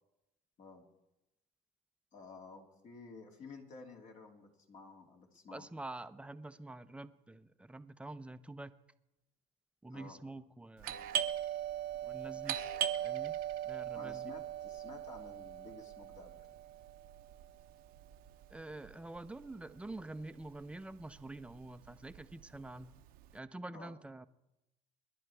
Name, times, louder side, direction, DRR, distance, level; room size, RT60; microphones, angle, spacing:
voice 1, 2.1-5.7 9.9-10.2 13.9-16.4 23.7-23.9, left 4 dB, 50° left, 1 dB, 2.7 m, -53 dB
voice 2, 5.5-8.7 9.8-11.0 12.0-12.6 13.0-13.4 13.6-14.3 18.5-23.0 23.3-24.3, right 2 dB, 5° right, 11 dB, 0.7 m, -47 dB
Doorbell, 10.8-20.2 20.5-20.6 21.2-21.5 21.9-23.2, right 10 dB, 70° right, 0.9 m, -39 dB
26.5 x 11.0 x 3.5 m, 0.93 s
supercardioid pair, 95°, 16 cm